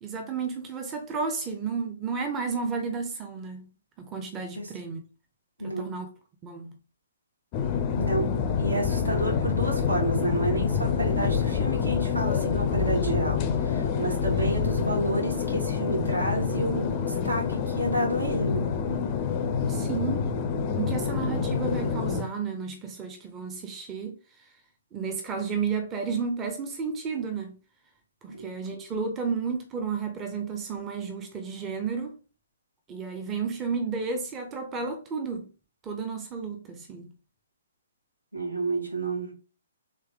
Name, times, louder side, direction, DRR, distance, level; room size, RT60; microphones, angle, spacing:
voice 1, 0.0-3.7 4.0-5.0 5.6-6.1 6.4-6.8 19.7-20.3 20.7-24.5 24.9-27.5 28.2-32.2 32.9-35.5 35.8-37.1, right 5 dB, 15° right, 0.6 m, -32 dB
sound 1, 7.5-22.2, left 6 dB, 30° left, 0.4 m, -27 dB
voice 2, 7.9-8.3 8.6-18.6 28.3-28.5 38.3-39.3, right 1 dB, 80° right, 1.6 m, -30 dB
3.3 x 3.2 x 3.4 m
figure-of-eight pair, 125°, 0 cm